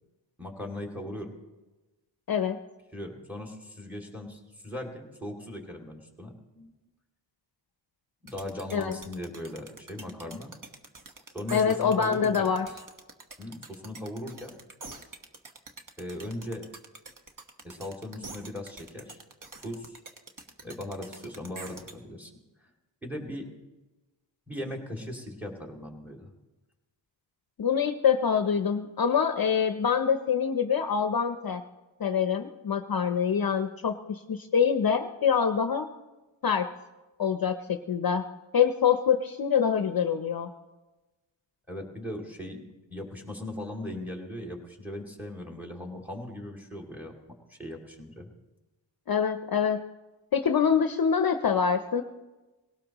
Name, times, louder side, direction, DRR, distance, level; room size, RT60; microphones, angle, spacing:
voice 1, 0.4-1.3 2.9-6.7 8.2-10.5 11.3-12.5 13.4-14.5 16.0-16.6 17.6-19.2 19.6-20.0 20.6-22.3 22.6-22.7 23.0-23.5 24.5-26.3 41.7-42.6 42.9-47.2 47.5-48.3, left 1 dB, 5° right, 1 dB, 2.3 m, -38 dB
voice 2, 2.3-2.6 8.7-9.0 11.5-12.7 27.6-31.6 32.0-35.9 36.4-36.7 37.2-38.2 38.5-40.5 49.1-49.8 50.3-52.0, left 7 dB, 50° left, 8 dB, 0.6 m, -25 dB
sound 1, 8.3-21.9, right 3 dB, 45° right, 1.3 m, -46 dB
18.5 x 18.0 x 2.9 m, 1.1 s
wide cardioid pair, 95°, 46 cm